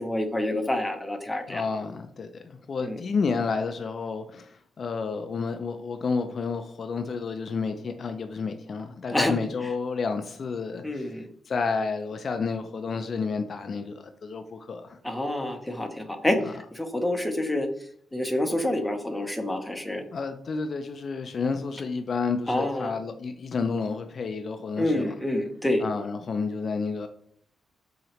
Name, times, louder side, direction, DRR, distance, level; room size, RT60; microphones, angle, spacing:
voice 1, 0.0-1.6 2.8-3.0 9.1-9.4 10.8-11.3 15.0-20.0 22.5-22.9 24.8-25.8, left 1 dB, 5° left, 0.6 m, -28 dB
voice 2, 1.5-11.1 11.5-15.0 20.1-25.1 25.8-27.1, left 4 dB, 50° left, 0.3 m, -30 dB
4.1 x 2.8 x 2.9 m
cardioid pair, 95°, 0 cm